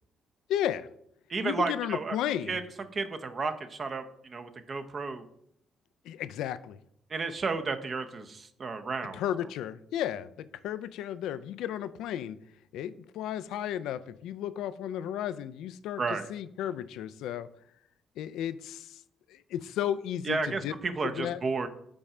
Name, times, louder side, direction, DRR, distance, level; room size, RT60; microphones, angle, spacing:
voice 1, 0.5-0.9 1.4-2.6 6.1-6.8 9.1-12.4 12.7-16.0 16.3-17.5 18.2-19.0 19.3-20.7 21.0-21.4, left 10 dB, 90° left, 14 dB, 0.3 m, -33 dB
voice 2, 1.3-2.2 2.5-2.6 2.9-5.2 7.1-9.2 16.0-16.3 20.2-21.7, right 4 dB, 40° right, 8 dB, 0.7 m, -32 dB
5.3 x 4.3 x 4.9 m, 0.71 s
cardioid pair, 90°, 0 cm